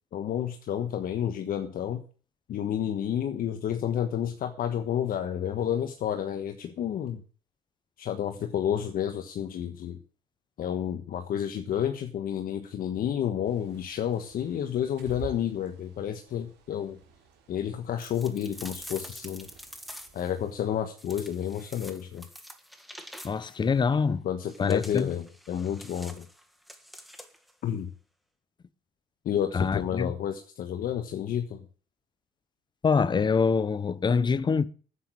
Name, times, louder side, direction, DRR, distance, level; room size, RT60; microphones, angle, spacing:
voice 1, 0.1-2.0 2.5-7.2 8.0-10.0 10.6-17.0 17.5-19.5 20.1-22.3 24.2-26.2 27.6-27.9 29.2-31.6, left 9 dB, 60° left, 1.3 m, -30 dB
Bird, 13.4-20.5, right 5 dB, 80° right, 4.0 m, -50 dB
sound 1, 18.0-20.3 21.0-23.6 24.5-27.5, equal, ahead, 1.6 m, -46 dB
voice 2, 23.2-24.2 24.6-25.1 29.5-30.1 32.8-34.7, left 5 dB, 25° left, 0.8 m, -25 dB
9.7 x 8.5 x 7.6 m
cardioid pair, 110°, 17 cm